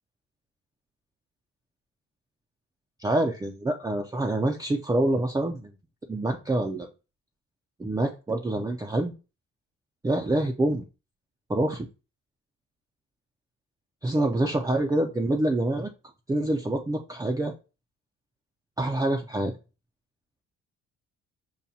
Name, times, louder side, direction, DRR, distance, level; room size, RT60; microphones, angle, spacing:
voice 1, 3.0-5.7 6.1-6.9 7.8-9.1 10.0-10.8 11.5-11.9 14.0-15.9 16.3-17.5 18.8-19.5, right 1 dB, 10° right, 2 dB, 0.4 m, -26 dB
5.6 x 2.2 x 2.6 m, 0.30 s
cardioid pair, 90°, 30 cm